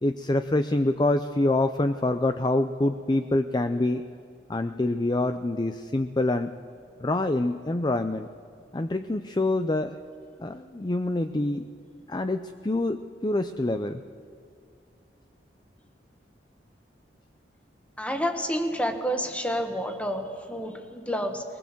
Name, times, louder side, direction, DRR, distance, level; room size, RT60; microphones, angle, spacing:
voice 1, 0.0-4.0 4.5-6.5 7.0-8.3 8.7-10.0 10.4-11.7 12.1-14.0, left 2 dB, 25° left, 9 dB, 0.5 m, -26 dB
voice 2, 18.0-21.4, equal, 5° left, 5 dB, 1.5 m, -29 dB
22.0 x 20.0 x 7.5 m, 2.4 s
head